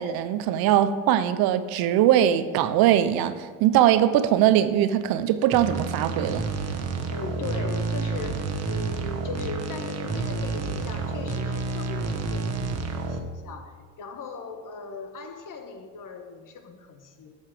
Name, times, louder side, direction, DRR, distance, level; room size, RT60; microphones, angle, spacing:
voice 1, 0.0-6.5, right 11 dB, 60° right, 0.7 m, -21 dB
sound 1, 5.5-13.2, right 4 dB, 40° right, 1.3 m, -29 dB
voice 2, 7.1-17.4, left 4 dB, 50° left, 1.4 m, -38 dB
9.0 x 5.5 x 6.6 m
hypercardioid pair, 75°, 41 cm